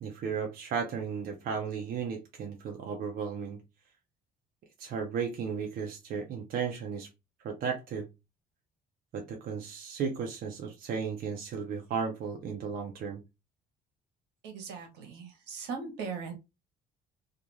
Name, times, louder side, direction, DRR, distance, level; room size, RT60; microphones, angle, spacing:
voice 1, 0.0-3.6 4.8-7.1 7.4-8.1 9.1-13.2, right 6 dB, 60° right, 0.7 m, -34 dB
voice 2, 14.4-16.3, right 5 dB, 85° right, 1.0 m, -39 dB
2.4 x 2.4 x 2.9 m
cardioid pair, 110°, 17 cm